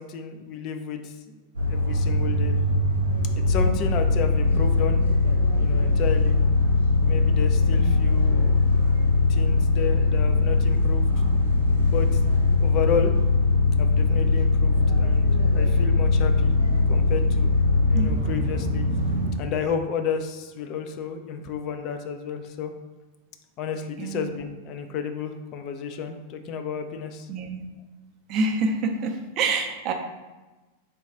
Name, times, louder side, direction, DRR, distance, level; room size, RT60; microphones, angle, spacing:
voice 1, 0.0-1.3 1.7-2.6 3.4-5.0 5.6-6.4 7.0-8.6 9.3-11.1 11.5-12.1 12.6-13.1 13.8-16.5 16.9-17.5 17.8-18.8 19.4-22.7 23.6-27.3, left 6 dB, 40° left, 6 dB, 0.3 m, -32 dB
sound 1, 1.5-19.3, left 3 dB, 80° right, 0.7 m, -21 dB
voice 2, 17.9-18.3 24.0-24.3 27.3-27.7 28.3-29.9, right 3 dB, 40° right, 4 dB, 0.5 m, -27 dB
3.4 x 2.3 x 4.1 m, 1.2 s
figure-of-eight pair, 90°, 0 cm